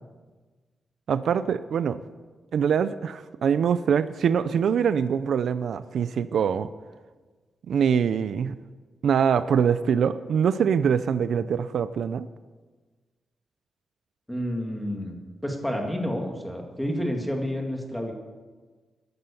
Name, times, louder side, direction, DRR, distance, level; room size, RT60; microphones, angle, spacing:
voice 1, 1.1-2.0 2.5-6.7 7.7-8.6 9.0-12.3, right 7 dB, 70° right, 13 dB, 0.5 m, -24 dB
voice 2, 14.3-15.2 15.4-18.1, equal, 5° left, 2 dB, 2.1 m, -29 dB
13.5 x 12.0 x 7.0 m, 1.3 s
wide cardioid pair, 155°, 0 cm